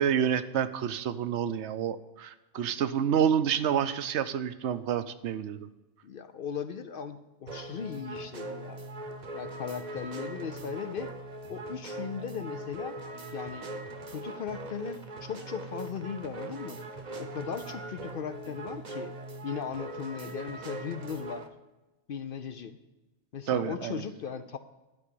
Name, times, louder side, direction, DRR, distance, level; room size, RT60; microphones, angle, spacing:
voice 1, 0.0-5.7 23.5-24.0, right 8 dB, 65° right, 13 dB, 0.8 m, -28 dB
voice 2, 6.0-8.8 9.3-11.1 11.5-13.0 13.3-13.7 14.1-16.8 17.2-19.1 19.4-21.5 22.1-22.8 23.3-24.6, left 7 dB, 60° left, 10 dB, 0.6 m, -37 dB
sound 1, 7.5-21.5, right 2 dB, 35° right, 0.9 m, -41 dB
12.0 x 4.9 x 8.4 m, 1.1 s
omnidirectional pair, 1.4 m